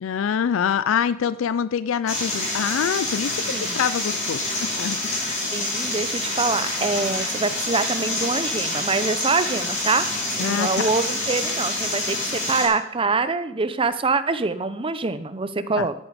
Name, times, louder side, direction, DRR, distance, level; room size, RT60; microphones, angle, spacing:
voice 1, 0.0-4.5 4.8-5.3 10.4-10.9 15.8-15.9, left 7 dB, 65° left, 15 dB, 0.4 m, -25 dB
sound 1, 2.1-12.7, left 2 dB, 35° left, 4.3 m, -27 dB
voice 2, 5.5-10.1 10.4-15.9, right 4 dB, 25° right, 12 dB, 0.7 m, -25 dB
13.0 x 8.6 x 5.0 m, 0.77 s
head